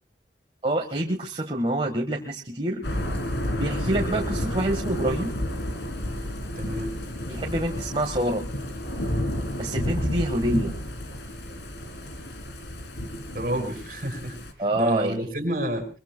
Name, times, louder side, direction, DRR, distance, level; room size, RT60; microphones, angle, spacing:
voice 1, 0.6-2.8 3.6-5.3 7.3-8.4 9.6-10.7 13.6-13.7 14.6-15.3, right 1 dB, 30° right, 1 dB, 1.5 m, -26 dB
Thunder / Rain, 2.8-14.5, equal, 80° left, 3.5 m, -31 dB
voice 2, 6.5-6.9 13.3-14.4 14.7-15.9, right 1 dB, 50° right, 5 dB, 4.8 m, -29 dB
23.5 x 23.5 x 2.2 m, 0.35 s
head